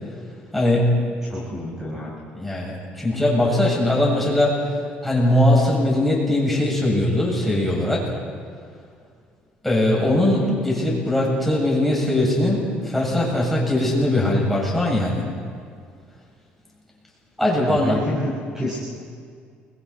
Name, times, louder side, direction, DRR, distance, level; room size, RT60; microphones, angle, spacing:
voice 1, 0.5-1.0 2.3-4.5 5.0-8.0 9.6-15.2 17.4-18.0, left 1 dB, 5° left, -4 dB, 7.6 m, -20 dB
voice 2, 1.2-2.1 17.6-18.8, left 1 dB, 15° right, -5 dB, 5.3 m, -28 dB
29.5 x 23.0 x 4.5 m, 2.2 s
cardioid pair, 135°, 3 cm